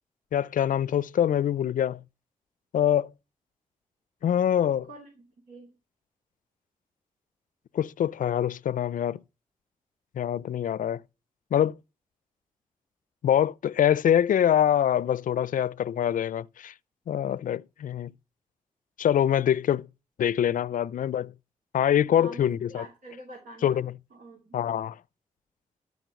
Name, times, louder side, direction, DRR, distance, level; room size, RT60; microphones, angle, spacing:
voice 1, 0.3-2.0 2.7-3.1 4.2-4.9 7.7-9.2 10.2-11.0 11.5-11.7 13.2-16.7 17.1-18.1 19.0-19.9 20.2-21.3 21.7-22.8 23.6-23.9 24.5-25.0, left 10 dB, 65° left, 0.4 m, -24 dB
voice 2, 4.9-5.7 22.0-23.8 24.1-24.6, right 1 dB, 75° right, 2.8 m, -46 dB
12.5 x 5.2 x 6.3 m
supercardioid pair, 50°, 15 cm